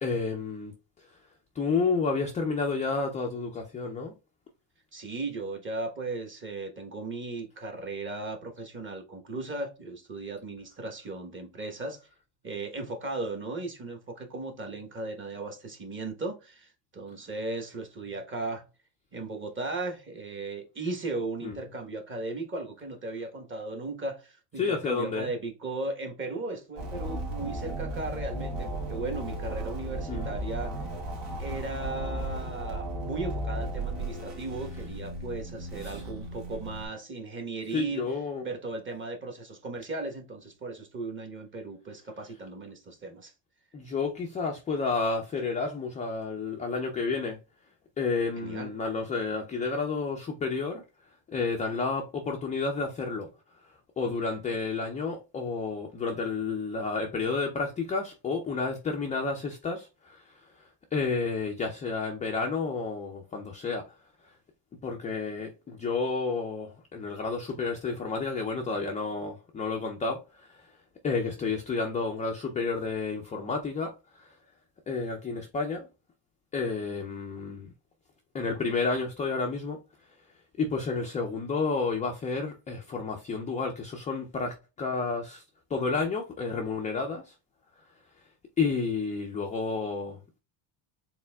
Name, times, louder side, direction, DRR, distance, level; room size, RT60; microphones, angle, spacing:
voice 1, 0.0-0.7 1.0-1.1 1.6-4.1 21.4-21.6 24.6-25.3 30.1-30.3 35.8-36.0 37.7-38.5 43.7-47.4 48.0-50.8 51.3-53.3 54.0-63.8 64.8-70.7 71.0-74.4 74.9-75.9 76.5-77.7 78.3-79.8 80.6-85.4 85.7-87.3 88.6-90.2, left 4 dB, 15° left, 0.3 m, -31 dB
voice 2, 4.9-12.0 12.4-18.6 19.1-30.7 31.4-38.0 38.4-43.3 48.4-48.7, right 3 dB, 25° right, 1.1 m, -36 dB
sound 1, 26.8-36.9, right 1 dB, 70° right, 1.8 m, -35 dB
4.5 x 3.6 x 2.2 m
cardioid pair, 125°, 49 cm